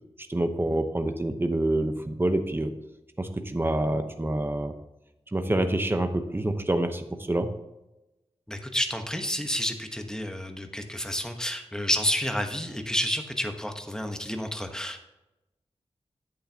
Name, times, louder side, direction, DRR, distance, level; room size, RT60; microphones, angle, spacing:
voice 1, 0.3-2.7 3.2-4.7 5.3-7.5, right 1 dB, 20° right, 7 dB, 0.8 m, -27 dB
voice 2, 8.5-15.0, equal, 5° left, 5 dB, 1.1 m, -30 dB
10.5 x 8.6 x 2.8 m, 0.98 s
wide cardioid pair, 85°, 11 cm